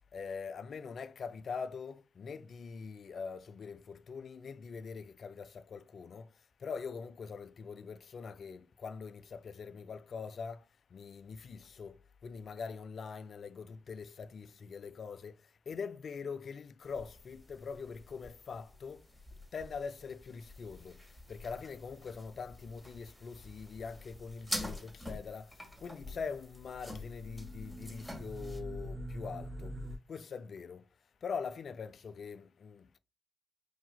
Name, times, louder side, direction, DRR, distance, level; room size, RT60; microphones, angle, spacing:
voice 1, 0.1-6.3 6.6-10.6 10.9-15.4 15.7-19.0 19.5-21.0 21.3-25.5 25.8-29.8 30.1-30.8 31.2-33.0, left 5 dB, 60° left, 0.4 m, -43 dB
sound 1, 16.8-28.6, left 1 dB, ahead, 1.9 m, -47 dB
sound 2, 26.4-30.0, equal, 30° right, 0.6 m, -44 dB
5.7 x 2.8 x 2.2 m
supercardioid pair, 45°, 0 cm